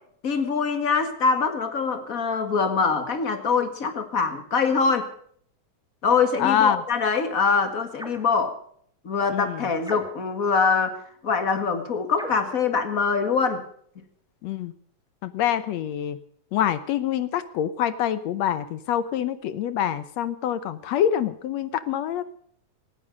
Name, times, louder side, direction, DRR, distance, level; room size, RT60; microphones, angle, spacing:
voice 1, 0.2-5.1 6.0-8.6 9.0-13.6, left 5 dB, 30° left, 9 dB, 1.9 m, -24 dB
voice 2, 6.4-6.8 9.3-9.6 14.4-14.7 15.2-16.2 16.5-22.2, left 10 dB, 70° left, 14 dB, 1.9 m, -25 dB
sound 1, 8.0-8.3 9.8-10.4 12.1-12.6, equal, ahead, 1.9 m, -39 dB
19.0 x 14.5 x 5.3 m, 0.63 s
omnidirectional pair, 3.5 m